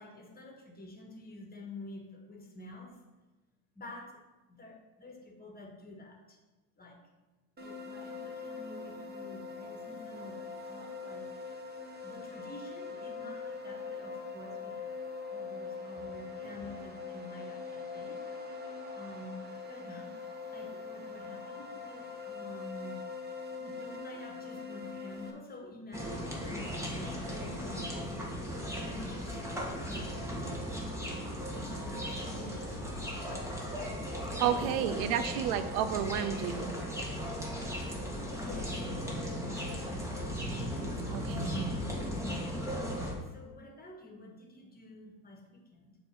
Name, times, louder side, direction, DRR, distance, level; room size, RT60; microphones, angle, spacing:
voice 1, 0.0-3.0 3.7-4.2 4.5-6.4 6.8-7.0 7.6-11.3 12.0-15.0 15.3-18.2 18.9-19.4 19.7-20.1 20.5-23.0 23.6-28.0 28.7-29.4 29.8-30.7 30.9-32.8 34.2-35.2 38.3-39.5 43.2-46.0, left 1 dB, 20° left, 1 dB, 1.7 m, -48 dB
sound 1, 7.6-25.3, left 4 dB, 25° right, 1.2 m, -42 dB
sound 2, 25.9-43.1, equal, 5° right, 1.6 m, -37 dB
voice 2, 34.4-36.7 41.1-41.7, right 9 dB, 85° right, 11 dB, 0.7 m, -31 dB
6.9 x 3.7 x 6.0 m, 1.1 s
supercardioid pair, 105°, 41 cm